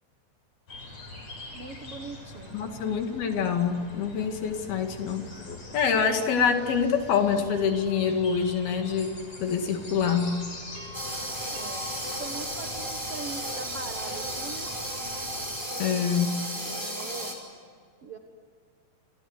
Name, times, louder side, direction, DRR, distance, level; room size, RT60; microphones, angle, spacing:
sound 1, 0.7-15.6, left 2 dB, 40° left, 7.0 m, -44 dB
voice 1, 1.5-2.6 11.5-14.7 16.5-17.4 18.0-18.2, right 4 dB, 55° right, 4 dB, 1.7 m, -41 dB
voice 2, 2.5-10.4 15.8-16.4, left 6 dB, 65° left, 5 dB, 3.9 m, -26 dB
sound 2, 7.2-9.6 9.9-16.2, left 2 dB, 70° right, 5.2 m, -49 dB
sound 3, 10.9-17.3, right 1 dB, 5° right, 4.9 m, -34 dB
29.0 x 25.5 x 8.1 m, 2.1 s
omnidirectional pair, 4.8 m